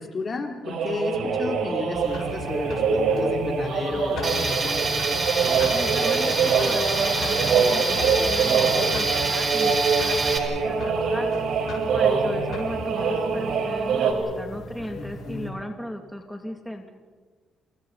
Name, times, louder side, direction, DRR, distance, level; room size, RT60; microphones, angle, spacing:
voice 1, 0.0-5.0 14.9-15.5, left 3 dB, 40° left, 3 dB, 3.5 m, -32 dB
sound 1, 0.6-14.1, right 5 dB, 75° right, 4.0 m, -24 dB
sound 2, 1.9-15.5, left 2 dB, 70° left, 7.2 m, -38 dB
Tools, 4.2-10.4, right 3 dB, 35° right, 4.9 m, -26 dB
voice 2, 5.7-11.3 11.9-16.9, equal, ahead, 2 dB, 2.6 m, -36 dB
29.0 x 28.0 x 4.2 m, 1.4 s
cardioid pair, 90°, 0 cm